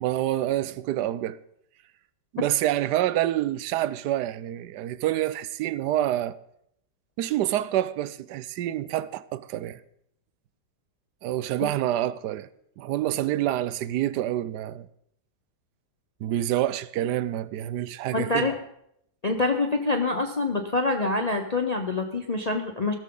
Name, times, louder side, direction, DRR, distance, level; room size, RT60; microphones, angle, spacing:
voice 1, 0.0-1.4 2.3-6.4 7.2-9.8 11.2-12.5 12.8-14.9 16.2-18.5, right 13 dB, 70° right, 1.1 m, -27 dB
voice 2, 18.1-18.5 19.2-22.9, left 3 dB, 40° left, 0.6 m, -26 dB
16.0 x 13.5 x 3.9 m
omnidirectional pair, 2.0 m